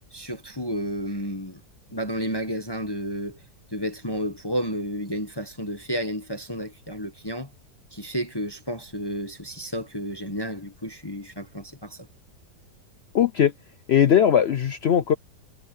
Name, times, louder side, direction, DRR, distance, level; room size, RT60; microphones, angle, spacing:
voice 1, 0.1-1.6 1.9-3.4 3.7-7.5 7.9-12.1, equal, 15° left, 1.2 m, -31 dB
voice 2, 13.1-13.5 13.9-15.1, left 9 dB, 85° left, 0.5 m, -19 dB
omnidirectional pair, 1.9 m